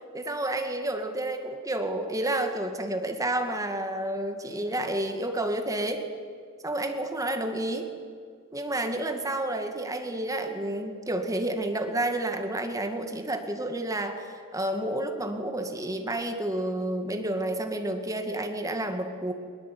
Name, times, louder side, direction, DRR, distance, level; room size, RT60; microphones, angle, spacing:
voice 1, 0.1-6.1 6.6-7.9 8.5-19.3, right 1 dB, 15° right, 5 dB, 2.1 m, -30 dB
23.0 x 21.5 x 9.2 m, 2.1 s
head